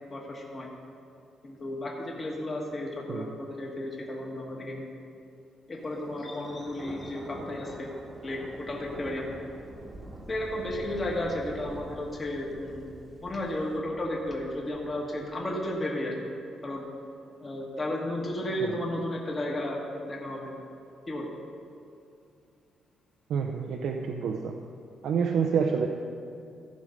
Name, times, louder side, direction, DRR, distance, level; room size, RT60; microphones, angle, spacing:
voice 1, 0.1-0.7 1.4-4.8 5.7-7.9 8.2-9.4 10.3-12.9 13.2-16.2 16.6-16.9 17.4-19.8 20.0-20.5 21.1-21.3, left 1 dB, 25° left, -2 dB, 1.5 m, -33 dB
Thunder, 5.8-15.6, right 1 dB, 15° right, 1.1 m, -46 dB
voice 2, 23.3-24.6 25.0-25.9, right 6 dB, 70° right, 3 dB, 0.6 m, -28 dB
14.5 x 5.3 x 6.4 m, 2.6 s
cardioid pair, 140°, 0 cm